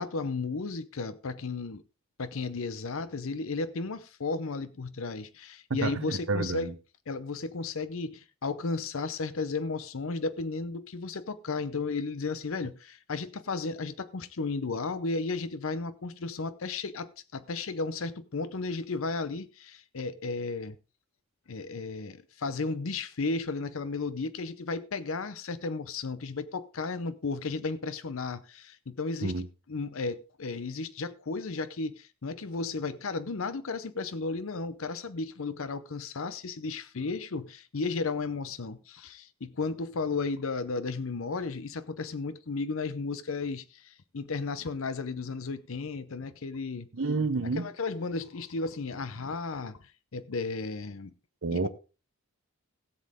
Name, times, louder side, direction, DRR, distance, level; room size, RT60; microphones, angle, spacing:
voice 1, 0.0-1.8 2.2-6.7 7.1-20.8 21.5-46.9 47.6-51.1 51.5-51.7, left 3 dB, 65° left, 0.7 m, -34 dB
voice 2, 5.7-6.7 29.2-29.5 46.9-47.7 51.4-51.7, right 3 dB, 60° right, 0.8 m, -29 dB
17.0 x 7.6 x 3.6 m
head